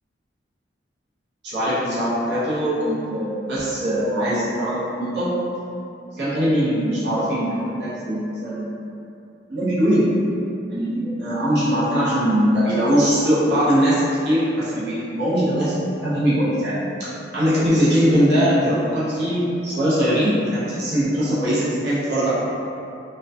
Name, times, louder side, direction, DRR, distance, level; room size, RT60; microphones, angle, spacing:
voice 1, 1.4-5.4 6.2-8.7 9.5-10.1 10.7-16.9 17.3-22.3, equal, 65° right, -11 dB, 0.7 m, -21 dB
2.5 x 2.2 x 2.2 m, 2.7 s
head